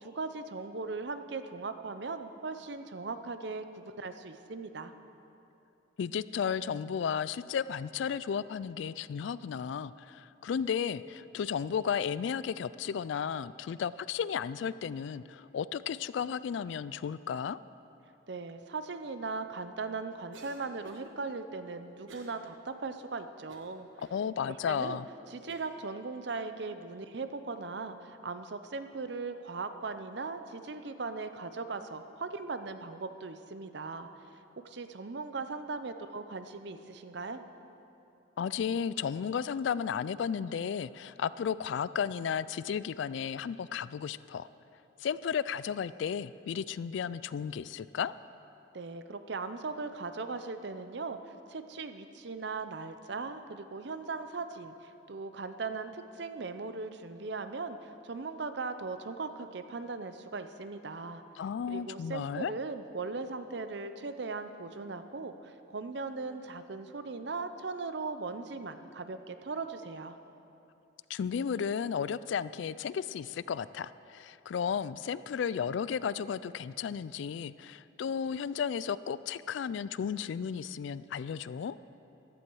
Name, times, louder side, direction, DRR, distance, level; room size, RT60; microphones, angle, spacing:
voice 1, 0.0-4.9 18.3-23.9 24.4-25.0 25.3-34.1 34.6-37.4 48.7-61.2 61.7-70.2, right 4 dB, 60° right, 9 dB, 0.6 m, -39 dB
voice 2, 6.0-17.6 24.1-25.1 38.4-44.5 45.0-48.1 61.4-62.5 71.1-81.8, left 7 dB, 65° left, 17 dB, 0.3 m, -34 dB
Cough, 20.3-21.1 22.1-22.4 22.9-23.0 23.5-24.1 24.8-24.9 25.5-25.8, right 2 dB, 75° right, 1.3 m, -52 dB
15.0 x 11.5 x 4.7 m, 2.8 s
head